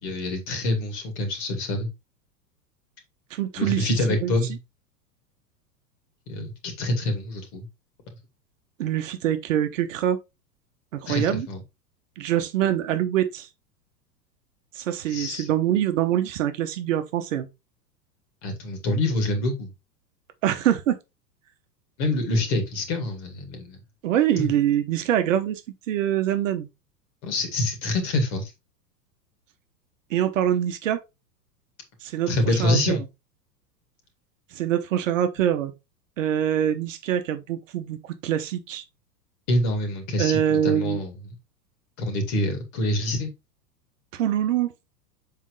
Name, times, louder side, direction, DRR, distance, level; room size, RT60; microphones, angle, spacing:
voice 1, 0.0-1.9 3.6-4.6 6.3-7.7 11.1-11.6 15.1-15.5 18.4-19.7 22.0-23.8 24.3-24.5 27.2-28.5 32.3-33.0 39.5-41.1 42.0-43.3, left 1 dB, 40° left, 2.6 m, -26 dB
voice 2, 3.3-4.3 8.8-10.2 10.9-11.5 12.2-13.5 14.7-17.5 20.4-21.0 24.0-25.6 25.9-26.7 30.1-31.0 32.0-33.0 34.5-35.7 36.2-38.0 38.2-38.8 40.2-41.0 44.1-44.7, right 11 dB, 50° right, 1.0 m, -24 dB
7.3 x 4.6 x 3.1 m
figure-of-eight pair, 95°, 50 cm